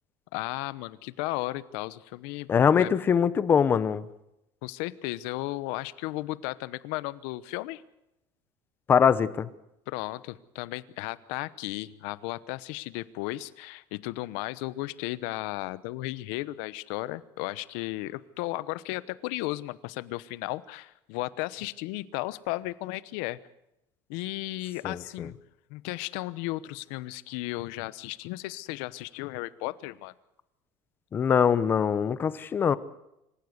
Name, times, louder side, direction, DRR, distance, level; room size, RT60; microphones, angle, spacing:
voice 1, 0.3-2.9 4.6-7.8 9.9-23.4 24.1-25.4 25.7-30.1, left 19 dB, 75° left, 17 dB, 1.0 m, -35 dB
voice 2, 2.5-4.0 8.9-9.5 24.8-25.3 31.1-32.8, left 7 dB, 20° left, 16 dB, 0.8 m, -23 dB
26.0 x 15.0 x 8.0 m, 0.86 s
cardioid pair, 180°, 10 cm